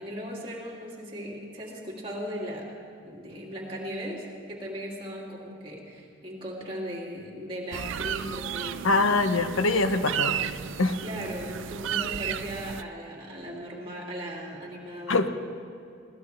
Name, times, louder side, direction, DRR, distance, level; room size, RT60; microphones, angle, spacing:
voice 1, 0.0-2.7 3.0-8.9 11.0-15.3, equal, 25° right, -4 dB, 2.6 m, -37 dB
sound 1, 7.7-12.8, right 10 dB, 70° right, 0.4 m, -33 dB
voice 2, 8.8-10.5 10.8-11.0 15.1-15.3, left 3 dB, 85° left, 9 dB, 0.9 m, -23 dB
20.5 x 17.0 x 3.3 m, 2.6 s
head